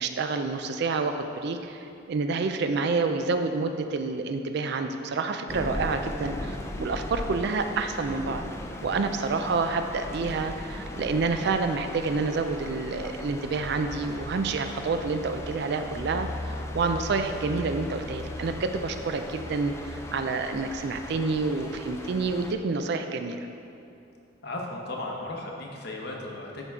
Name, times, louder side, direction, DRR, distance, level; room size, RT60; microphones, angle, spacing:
voice 1, 0.0-8.4 8.8-23.4, right 4 dB, 60° right, 7 dB, 0.4 m, -28 dB
sound 1, 5.5-22.5, left 1 dB, 15° left, 0.3 m, -38 dB
voice 2, 24.4-26.6, left 2 dB, 55° left, -1 dB, 0.9 m, -35 dB
11.0 x 3.7 x 3.6 m, 2.6 s
head